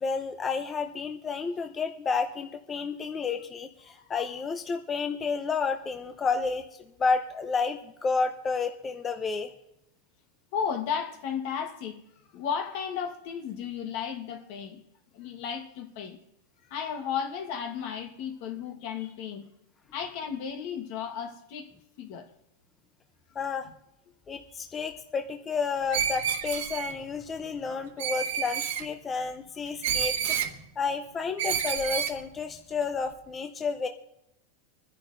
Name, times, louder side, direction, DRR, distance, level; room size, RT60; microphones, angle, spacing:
voice 1, 0.0-9.5 23.3-23.7 24.3-33.9, left 5 dB, 15° left, 0.6 m, -31 dB
voice 2, 10.5-12.0 12.3-14.8 15.1-16.2 16.6-19.5 19.9-21.7 22.0-22.3, left 7 dB, 50° left, 1.2 m, -34 dB
Screech, 25.9-26.9 28.0-28.8 29.8-30.5 31.4-32.2, right 8 dB, 70° right, 1.5 m, -29 dB
27.0 x 10.5 x 2.6 m
supercardioid pair, 160°, 0 cm